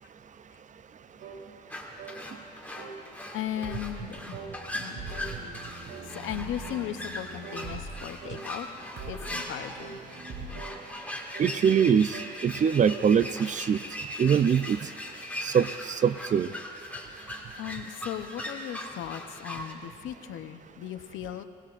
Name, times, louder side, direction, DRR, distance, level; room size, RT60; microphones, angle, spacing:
sound 1, 1.2-1.4 2.0-2.2 2.8-3.0 3.5-3.8 4.3-4.6 5.1-5.3 5.9-6.1 6.6-6.9 7.4-7.7 8.2-8.5 9.0-9.2 9.8-10.0 10.5-10.8 11.3-11.6 12.1-12.4 12.7-13.1, right 6 dB, 80° right, 3.4 m, -44 dB
sound 2, 1.7-19.7, left 1 dB, 10° left, 1.8 m, -40 dB
voice 1, 3.3-4.4 4.7-5.5 6.1-8.7 9.1-10.0 17.6-21.4, left 11 dB, 85° left, 9 dB, 0.8 m, -37 dB
sound 3, 3.3-10.6, right 3 dB, 60° right, 3.7 m, -43 dB
voice 2, 11.4-12.1 12.4-13.8 14.2-14.8 15.4-16.5, right 7 dB, 40° right, 16 dB, 0.4 m, -23 dB
27.0 x 17.5 x 2.5 m, 2.2 s
cardioid pair, 90°, 20 cm